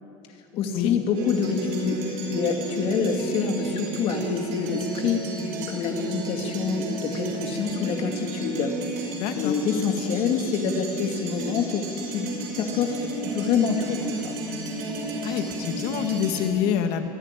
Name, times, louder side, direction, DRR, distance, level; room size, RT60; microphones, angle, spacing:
voice 1, 0.5-2.0 2.3-5.2 5.7-8.8 9.4-14.3, left 6 dB, 50° left, 4 dB, 2.3 m, -27 dB
sound 1, 1.1-16.5, right 2 dB, 70° right, 6.0 m, -32 dB
voice 2, 9.2-9.5 15.2-17.1, left 9 dB, 65° left, 6 dB, 1.9 m, -26 dB
23.5 x 12.0 x 9.9 m, 2.8 s
supercardioid pair, 130°, 12 cm